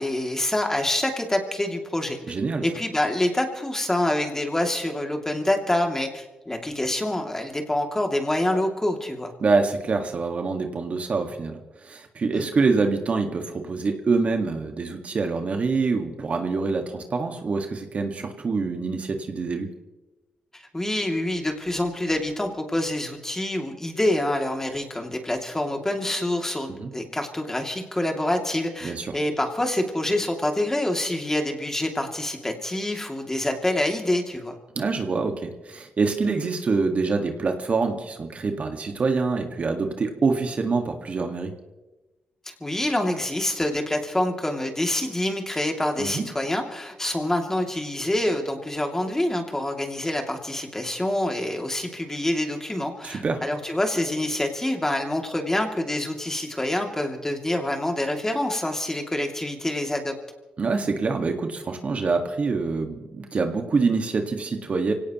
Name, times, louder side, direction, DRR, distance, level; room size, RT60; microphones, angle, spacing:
voice 1, 0.0-2.2 2.6-9.3 12.3-12.5 20.7-34.6 36.4-36.5 42.5-60.1, left 1 dB, 15° left, 3 dB, 2.6 m, -26 dB
voice 2, 2.3-2.6 9.4-19.7 26.7-26.9 28.8-29.2 34.8-41.5 46.0-46.3 53.0-53.4 60.6-64.9, right 4 dB, 50° right, 5 dB, 1.8 m, -25 dB
25.0 x 17.5 x 3.1 m, 1.1 s
cardioid pair, 70°, 3 cm